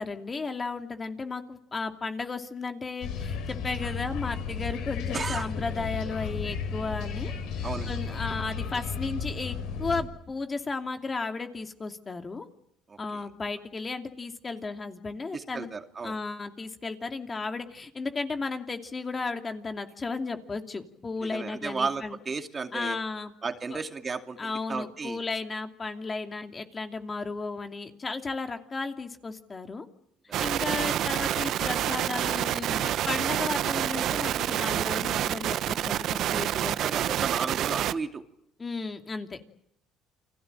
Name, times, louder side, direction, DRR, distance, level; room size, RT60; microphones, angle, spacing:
voice 1, 0.0-12.5 13.0-15.7 16.0-22.2 22.7-23.3 23.7-23.8 24.4-29.9 30.4-36.8 38.6-39.4, left 4 dB, 25° left, 6 dB, 2.7 m, -34 dB
sound 1, 3.0-10.0, left 6 dB, 75° left, 5.2 m, -33 dB
voice 2, 5.1-5.5 7.6-8.2 12.9-13.2 15.3-16.2 21.2-23.0 23.4-25.2 30.3-30.4 36.8-38.2, right 4 dB, 30° right, 6 dB, 2.4 m, -34 dB
sound 2, 30.3-37.9, right 11 dB, 65° right, 1.1 m, -28 dB
29.5 x 21.0 x 9.0 m, 0.72 s
cardioid pair, 100°, 0 cm